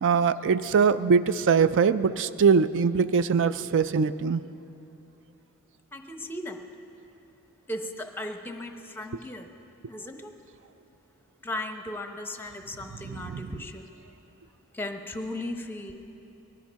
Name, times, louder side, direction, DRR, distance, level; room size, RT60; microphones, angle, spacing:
voice 1, 0.0-4.4 13.0-13.6, right 6 dB, 55° right, 13 dB, 0.4 m, -22 dB
voice 2, 5.9-6.6 7.7-9.5 9.9-10.3 11.4-13.9 14.7-15.9, left 1 dB, 10° left, 5 dB, 0.9 m, -36 dB
19.5 x 13.0 x 5.7 m, 2.9 s
head